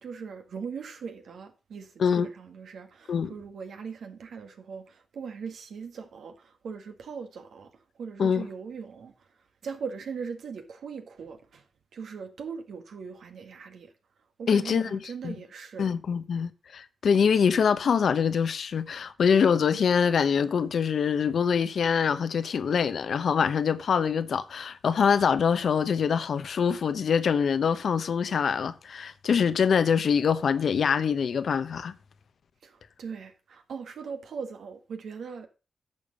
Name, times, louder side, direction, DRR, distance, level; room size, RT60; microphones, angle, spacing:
voice 1, 0.0-7.7 8.0-9.1 9.6-11.6 11.9-13.9 14.4-15.9 32.6-35.5, right 6 dB, 75° right, 1.8 m, -40 dB
voice 2, 14.5-15.4 15.8-31.9, left 6 dB, 70° left, 1.0 m, -24 dB
11.0 x 6.7 x 5.4 m
cardioid pair, 55°, 0 cm